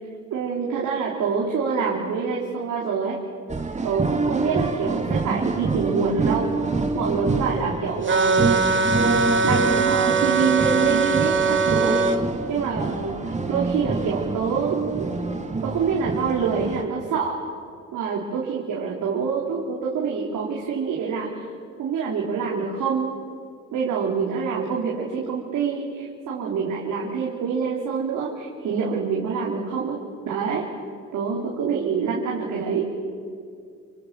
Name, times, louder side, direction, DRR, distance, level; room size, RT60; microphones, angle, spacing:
voice 1, 0.3-3.2 3.8-6.5 6.9-8.7 9.4-12.0 12.5-15.1 15.6-17.4 17.9-21.4 21.8-23.1 23.7-30.0 30.3-30.7 31.1-32.9, right 5 dB, 80° right, -3 dB, 4.1 m, -26 dB
sound 1, 3.5-16.8, right 3 dB, 25° right, 2.7 m, -27 dB
sound 2, 8.1-12.2, right 4 dB, 40° right, 2.3 m, -21 dB
29.0 x 25.5 x 7.8 m, 2.2 s
cardioid pair, 90°, 30 cm